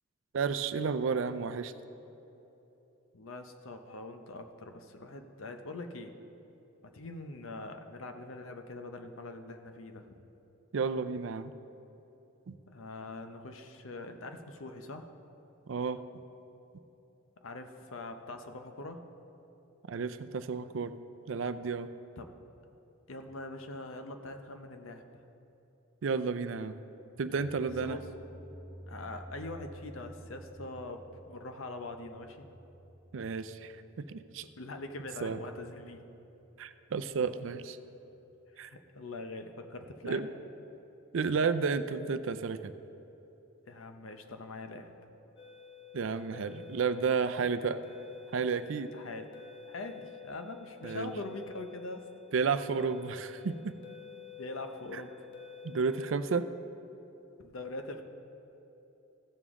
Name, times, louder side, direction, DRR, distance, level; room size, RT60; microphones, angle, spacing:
voice 1, 0.3-1.7 10.7-11.5 12.5-12.6 15.7-16.0 19.9-20.9 21.3-21.9 26.0-26.8 27.2-28.0 33.1-33.8 34.1-34.4 35.2-35.4 36.6-37.8 38.6-38.7 40.0-40.3 41.1-42.7 45.9-47.8 48.3-48.9 50.8-51.1 52.3-53.8 54.9-55.0 55.6-56.4, right 5 dB, 70° right, 11 dB, 0.4 m, -32 dB
voice 2, 3.1-6.1 6.8-10.2 12.7-15.1 17.4-19.0 22.2-22.3 23.1-25.0 27.8-28.0 28.9-32.5 34.6-36.0 38.6-40.2 43.7-44.9 48.9-49.3 49.7-52.0 54.4-55.1 57.4-58.0, left 2 dB, 85° left, 6 dB, 0.8 m, -43 dB
sound 1, 27.1-36.0, right 1 dB, 45° right, 1.0 m, -52 dB
sound 2, 45.4-56.1, left 10 dB, 60° left, 1.0 m, -49 dB
15.5 x 7.0 x 3.6 m, 3.0 s
head